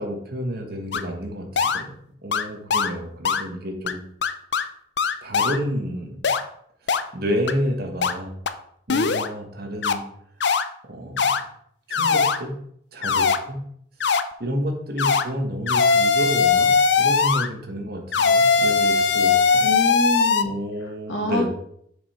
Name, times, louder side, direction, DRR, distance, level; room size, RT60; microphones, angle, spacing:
voice 1, 0.0-1.9 2.2-4.0 5.2-6.3 6.8-8.4 8.9-10.0 10.8-11.5 11.9-12.6 12.9-13.6 14.4-16.7 17.0-19.6 20.4-21.5, equal, 55° right, 3 dB, 1.4 m, -30 dB
sound 1, 0.9-1.0 1.6-1.8 2.3-2.4 2.7-2.9 3.2-3.4 3.9-4.0 4.2-4.6 5.0-5.6 6.2-6.4 6.9-7.0 7.5-7.6 8.0-8.1 8.5-8.6 8.9-9.3 9.8-9.9 10.4-10.6 11.2-11.4 11.9-12.4 13.0-13.4 14.0-14.2 15.0-15.2 15.7-17.5 18.1-20.4, left 5 dB, 65° left, 0.5 m, -20 dB
voice 2, 19.6-20.6 21.1-21.5, left 1 dB, 85° left, 1 dB, 1.9 m, -25 dB
6.8 x 5.3 x 4.3 m, 0.70 s
head